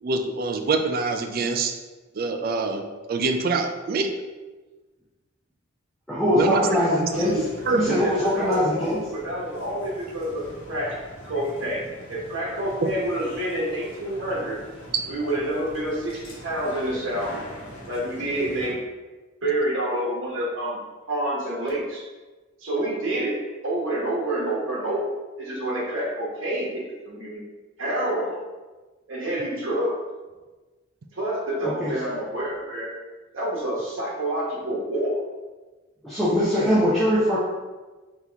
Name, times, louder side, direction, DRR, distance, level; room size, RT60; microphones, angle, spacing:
voice 1, 0.0-1.7 2.1-4.1 6.3-8.0 12.8-12.9, right 3 dB, 45° right, 6 dB, 0.4 m, -25 dB
voice 2, 6.1-7.4 7.7-9.0 31.6-31.9 36.0-37.4, equal, ahead, -11 dB, 0.7 m, -22 dB
sound 1, 7.1-18.7, equal, 85° left, 1.2 m, -43 dB
voice 3, 7.6-11.0 11.2-14.6 15.1-17.4 17.9-18.8 19.4-20.8 21.1-22.0 22.6-23.4 23.6-27.4 27.8-28.4 29.1-30.0 31.1-32.9 33.3-35.2, right 1 dB, 80° right, -4 dB, 1.1 m, -28 dB
4.0 x 3.0 x 3.4 m, 1.2 s
head